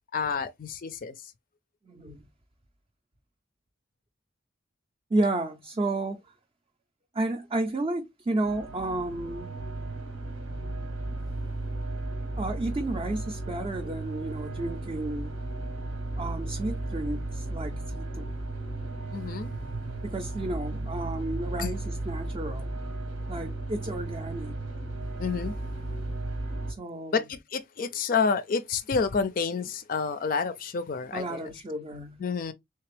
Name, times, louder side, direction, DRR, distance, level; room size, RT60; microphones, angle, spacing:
voice 1, 0.1-1.1 19.1-19.5 21.6-21.7 25.2-25.5 27.1-31.5 32.2-32.5, left 5 dB, 40° left, 0.4 m, -29 dB
voice 2, 1.9-2.2 5.1-6.2 7.1-9.5 12.4-15.4 16.2-18.3 20.0-22.7 23.3-24.6 26.7-27.2 31.1-32.2, right 2 dB, 25° right, 0.4 m, -32 dB
sound 1, 8.4-26.7, right 2 dB, 90° right, 1.2 m, -35 dB
3.3 x 3.2 x 3.3 m
head